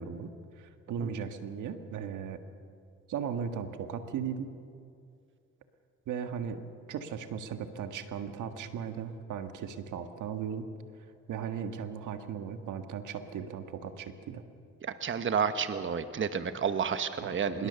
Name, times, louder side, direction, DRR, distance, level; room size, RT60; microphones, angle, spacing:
voice 1, 0.0-2.4 3.1-4.6 6.1-6.6 6.9-10.7 11.3-14.4 17.2-17.7, right 7 dB, 80° right, 8 dB, 1.7 m, -37 dB
voice 2, 14.8-17.7, right 6 dB, 40° right, 10 dB, 1.1 m, -30 dB
25.5 x 21.0 x 6.9 m, 2.4 s
cardioid pair, 90°, 30 cm